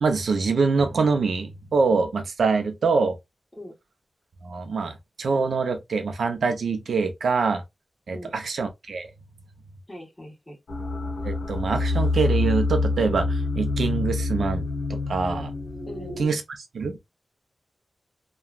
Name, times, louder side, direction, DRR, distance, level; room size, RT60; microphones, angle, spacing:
voice 1, 0.0-3.2 4.4-7.6 8.1-9.1 11.2-15.5 16.2-16.4 16.7-17.0, right 4 dB, 85° right, 0.6 m, -24 dB
voice 2, 9.9-10.6 15.9-16.2, left 1 dB, 15° left, 1.4 m, -40 dB
sound 1, 10.7-16.3, left 3 dB, 70° left, 0.9 m, -26 dB
3.0 x 2.3 x 2.3 m
wide cardioid pair, 100°, 0 cm